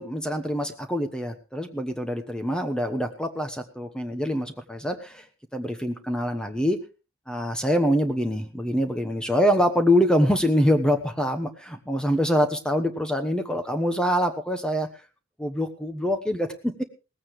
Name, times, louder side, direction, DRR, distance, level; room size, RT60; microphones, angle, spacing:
voice 1, 0.0-5.2 5.5-6.8 7.3-14.9 15.4-16.8, equal, 5° left, 6 dB, 1.1 m, -25 dB
18.0 x 15.0 x 3.2 m, 0.31 s
head